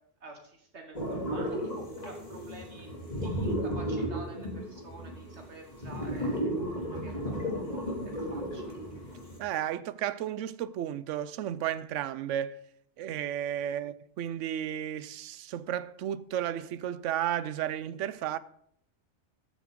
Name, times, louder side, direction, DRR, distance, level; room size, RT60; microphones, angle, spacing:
voice 1, 0.2-2.9 3.2-8.6, right 2 dB, 65° right, 1.6 m, -49 dB
sound 1, 0.9-9.4, equal, 35° left, 2.7 m, -34 dB
voice 2, 9.4-12.6 13.0-18.4, right 11 dB, 85° right, 0.9 m, -33 dB
13.5 x 8.2 x 3.7 m
omnidirectional pair, 1.2 m